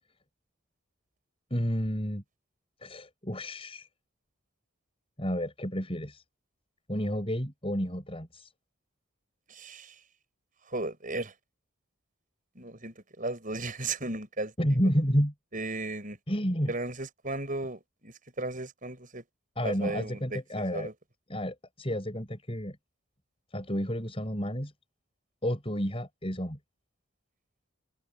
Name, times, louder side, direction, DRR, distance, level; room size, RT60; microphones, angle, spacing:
voice 1, 1.5-2.2 2.8-3.9 5.2-6.2 6.9-8.5 14.6-15.3 16.3-16.7 19.6-20.9 21.3-22.8 23.5-24.7 25.4-26.6, equal, 25° left, 6.4 m, -30 dB
voice 2, 9.5-9.9 10.7-11.3 12.5-14.8 15.5-16.2 16.7-19.2 19.6-20.9, right 2 dB, 40° right, 6.3 m, -35 dB
head